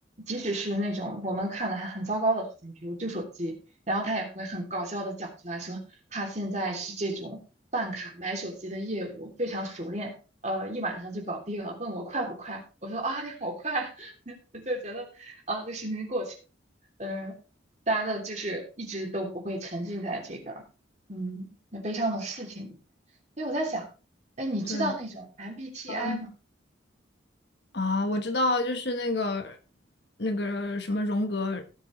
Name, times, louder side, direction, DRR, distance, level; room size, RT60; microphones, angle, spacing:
voice 1, 0.3-3.5 3.9-5.8 6.1-7.4 7.7-10.1 10.4-16.3 17.0-17.3 17.9-20.6 21.1-22.7 23.4-23.8 24.4-26.3, right 1 dB, 35° right, 3.1 m, -32 dB
voice 2, 25.9-26.2 27.7-29.6 30.2-31.6, left 2 dB, 60° left, 1.3 m, -28 dB
17.0 x 7.0 x 3.2 m
head